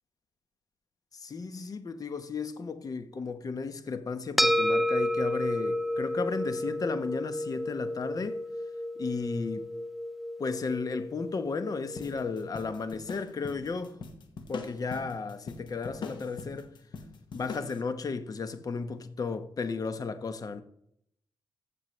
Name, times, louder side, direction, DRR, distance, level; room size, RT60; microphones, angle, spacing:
voice 1, 1.1-8.4 9.0-9.7 10.4-14.0 14.5-16.7 17.3-20.6, left 4 dB, 50° left, 1.1 m, -34 dB
sound 1, 4.4-13.0, left 1 dB, ahead, 0.5 m, -31 dB
sound 2, 12.0-17.8, left 4 dB, 75° left, 1.3 m, -42 dB
15.0 x 6.7 x 3.3 m
cardioid pair, 80°, 8 cm